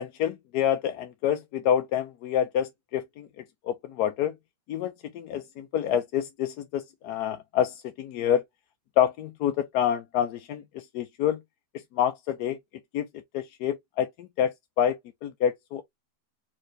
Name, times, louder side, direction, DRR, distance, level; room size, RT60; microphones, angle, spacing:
voice 1, 0.0-4.3 4.7-8.4 9.0-11.4 11.9-12.6 12.9-13.1 13.3-15.8, left 9 dB, 75° left, 1.1 m, -27 dB
4.4 x 3.7 x 3.1 m
omnidirectional pair, 1.8 m